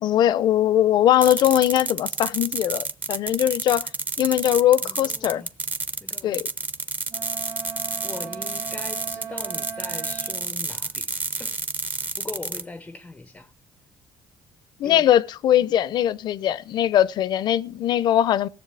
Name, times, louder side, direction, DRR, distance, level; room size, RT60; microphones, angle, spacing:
voice 1, 0.0-3.9 4.2-5.4 6.2-6.5 14.8-18.5, left 11 dB, 65° left, 0.6 m, -20 dB
Electric Sparks, 1.2-12.6, right 3 dB, 20° right, 0.9 m, -30 dB
voice 2, 4.8-5.5 6.0-6.4 8.0-11.1 11.4-11.6 12.2-13.5 14.8-15.1, left 3 dB, 15° left, 0.6 m, -40 dB
Wind instrument woodwind instrument, 7.1-10.5, right 7 dB, 45° right, 2.1 m, -38 dB
16.5 x 7.2 x 8.2 m
cardioid pair, 95°, 8 cm